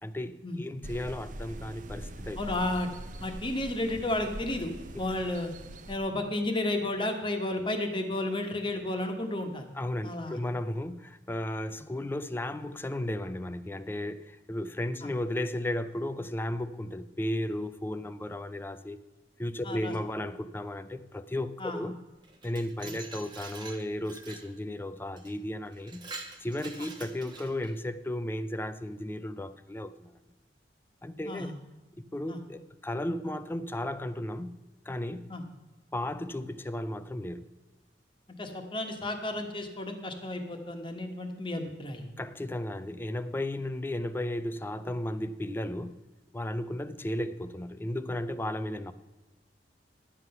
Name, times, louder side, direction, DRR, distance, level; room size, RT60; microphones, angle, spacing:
voice 1, 0.0-2.4 9.7-19.0 19.4-22.0 22.4-26.0 26.4-30.1 31.0-31.7 31.9-35.3 35.9-37.5 42.2-46.0 46.3-48.9, left 1 dB, 10° left, 0.4 m, -34 dB
sound 1, 0.8-6.0, right 1 dB, 45° right, 0.7 m, -42 dB
voice 2, 2.4-2.9 3.2-5.5 5.9-9.6 10.0-10.4 19.6-19.9 21.6-21.8 22.8-22.9 31.3-31.5 32.3-32.4 35.3-35.4 38.4-42.0, left 1 dB, 25° left, 1.3 m, -32 dB
Glass, 22.2-24.5 25.2-25.3 25.7-27.8, right 4 dB, 25° right, 1.1 m, -45 dB
11.5 x 7.8 x 5.5 m
head